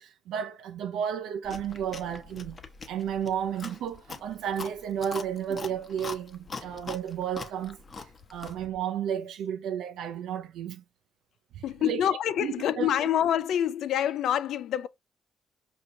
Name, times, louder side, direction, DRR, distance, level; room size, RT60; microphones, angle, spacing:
voice 1, 0.0-2.6 2.9-10.8 11.5-12.1 12.4-12.9, right 9 dB, 85° right, 0.4 m, -33 dB
Chewing mastication, 1.4-8.7, left 4 dB, 35° left, 0.8 m, -43 dB
voice 2, 11.6-14.9, left 10 dB, 75° left, 0.3 m, -26 dB
5.0 x 2.8 x 2.6 m
cardioid pair, 90°, 0 cm